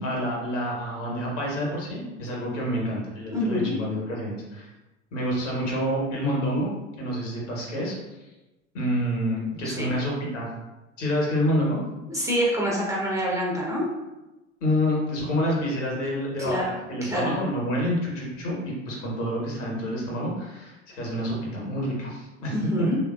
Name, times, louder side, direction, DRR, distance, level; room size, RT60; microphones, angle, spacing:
voice 1, 0.0-4.7 5.1-6.7 7.0-7.9 8.7-10.5 11.0-11.8 14.6-22.9, equal, 70° left, -3 dB, 1.2 m, -28 dB
voice 2, 3.3-3.7 9.6-9.9 12.1-13.8 16.4-16.6 17.0-17.3 22.5-23.0, equal, 10° right, -4 dB, 0.5 m, -26 dB
3.2 x 2.7 x 2.3 m, 1.0 s
figure-of-eight pair, 80°, 38 cm